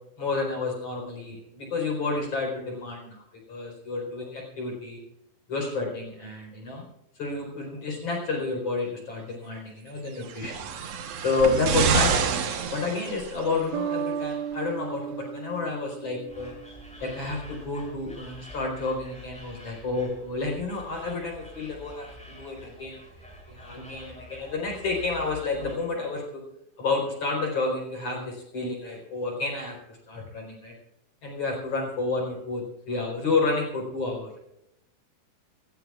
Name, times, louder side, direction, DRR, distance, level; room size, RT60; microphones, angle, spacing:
voice 1, 0.2-5.0 5.5-6.9 7.2-10.6 11.2-16.5 17.0-23.0 23.5-26.4 26.8-30.7 31.2-34.4, left 3 dB, 40° left, 0 dB, 5.0 m, -30 dB
sound 1, 10.2-13.6 14.5-14.6, right 6 dB, 70° right, 1.5 m, -27 dB
Bass guitar, 13.7-17.3, right 8 dB, 90° right, 3.0 m, -34 dB
sound 2, 16.3-25.7, left 1 dB, ahead, 5.4 m, -47 dB
27.5 x 16.0 x 2.4 m, 0.81 s
omnidirectional pair, 4.8 m